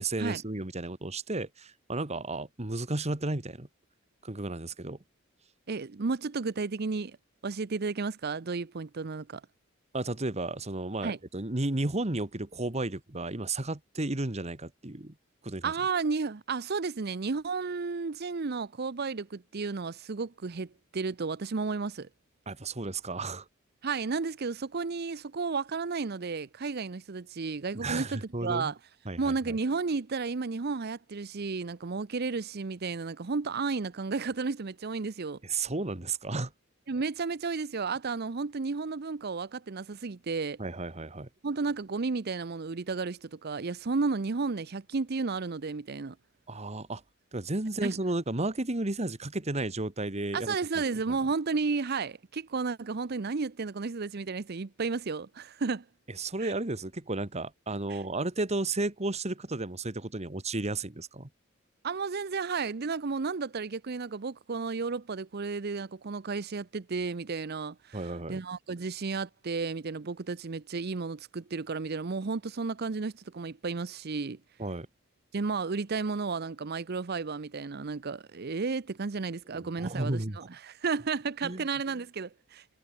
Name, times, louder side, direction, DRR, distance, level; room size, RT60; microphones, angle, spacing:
voice 1, 0.0-3.7 4.2-5.0 9.9-15.1 15.4-15.7 22.5-23.5 27.7-28.7 29.1-29.6 35.4-36.5 40.6-41.3 46.5-47.0 47.3-50.6 51.1-51.2 56.1-61.3 67.9-68.4 74.6-74.9 79.5-80.4 81.4-81.7, right 2 dB, 35° right, 1.7 m, -33 dB
voice 2, 5.7-7.2 7.4-9.4 11.0-11.2 15.6-22.1 23.8-28.8 29.2-35.4 36.9-40.6 41.4-46.2 47.8-48.0 50.3-55.8 56.4-56.5 57.9-58.0 61.8-68.0 68.3-74.4 75.3-82.6, right 4 dB, 50° right, 0.7 m, -33 dB
head